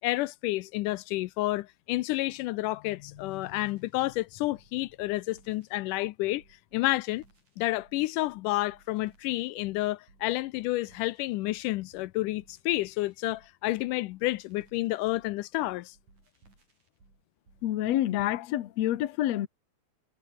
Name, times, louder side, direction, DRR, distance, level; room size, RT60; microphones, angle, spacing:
voice 1, 0.0-6.4 6.7-7.2 7.6-16.0, left 18 dB, 85° left, 2.2 m, -30 dB
sound 1, 3.0-17.7, right 3 dB, 65° right, 8.5 m, -62 dB
voice 2, 17.6-19.5, left 13 dB, 65° left, 2.1 m, -28 dB
omnidirectional pair, 3.7 m